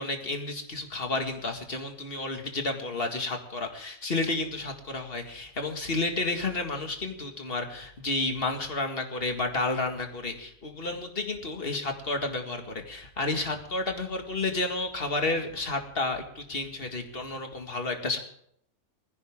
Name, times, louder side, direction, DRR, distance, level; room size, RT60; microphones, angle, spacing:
voice 1, 0.0-18.2, left 2 dB, 40° left, 4 dB, 2.2 m, -31 dB
20.0 x 15.5 x 3.7 m, 0.68 s
omnidirectional pair, 1.6 m